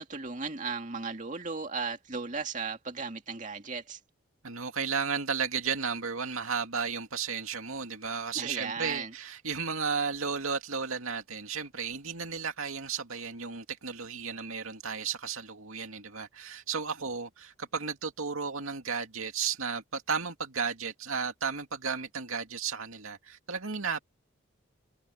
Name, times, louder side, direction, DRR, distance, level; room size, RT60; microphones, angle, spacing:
voice 1, 0.0-4.0 8.3-9.1, right 4 dB, 35° right, 2.3 m, -36 dB
voice 2, 4.4-24.0, right 6 dB, 80° right, 2.4 m, -34 dB
head